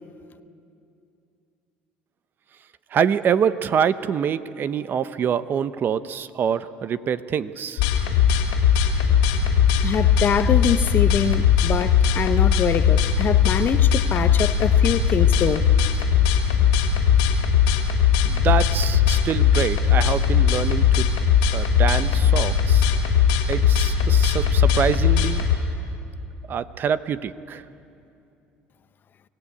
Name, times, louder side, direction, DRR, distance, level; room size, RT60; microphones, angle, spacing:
voice 1, 2.9-7.8 18.2-21.1 21.5-22.9 23.5-25.4 26.5-27.6, right 8 dB, 45° right, 0.8 m, -25 dB
sound 1, 7.8-25.6, left 7 dB, 90° left, 2.7 m, -19 dB
voice 2, 9.8-15.7, left 8 dB, 45° left, 0.8 m, -24 dB
24.5 x 17.0 x 8.4 m
supercardioid pair, 85°, 5 cm